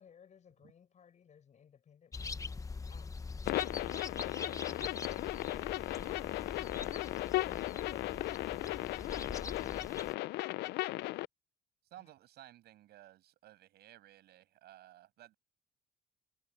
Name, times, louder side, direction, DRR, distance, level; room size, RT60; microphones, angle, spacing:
voice 1, 0.0-2.6 2.9-3.8 6.0-9.0 9.4-10.5 12.0-12.1, left 8 dB, 45° left, 7.8 m, -57 dB
sound 1, 2.1-10.2, left 4 dB, 20° left, 0.9 m, -44 dB
sound 2, 3.4-11.2, left 18 dB, 80° left, 0.5 m, -36 dB
voice 2, 11.9-15.4, right 14 dB, 75° right, 7.7 m, -56 dB
cardioid pair, 110°, 17 cm